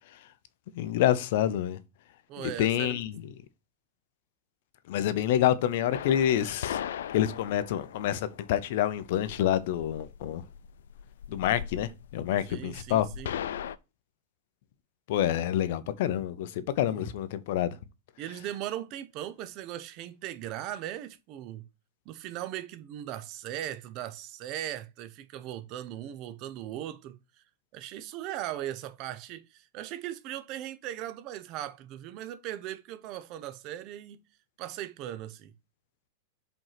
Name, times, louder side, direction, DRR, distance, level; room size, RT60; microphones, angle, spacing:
voice 1, 0.7-1.8 2.4-3.2 4.9-6.8 7.1-10.4 11.3-13.1 15.1-17.8, left 11 dB, 50° left, 0.7 m, -27 dB
voice 2, 2.3-3.0 12.5-13.3 16.9-17.1 18.2-21.7 22.1-27.2 27.7-34.2 34.6-35.5, right 12 dB, 30° right, 0.6 m, -38 dB
sound 1, 5.9-13.8, left 9 dB, 85° left, 0.5 m, -39 dB
5.4 x 4.4 x 5.8 m
supercardioid pair, 175°, 0 cm